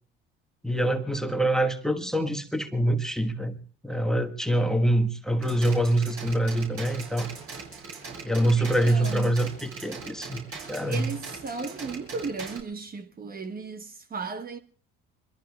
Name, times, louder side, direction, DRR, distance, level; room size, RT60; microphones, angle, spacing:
voice 1, 0.6-3.6 3.8-7.3 8.2-10.4 10.7-11.1, right 1 dB, ahead, 1.4 m, -25 dB
sound 1, 5.4-12.6, right 4 dB, 50° right, 7.6 m, -40 dB
voice 2, 8.2-9.4 10.9-14.6, right 4 dB, 30° right, 1.2 m, -36 dB
26.0 x 22.0 x 2.4 m
hypercardioid pair, 65°, 29 cm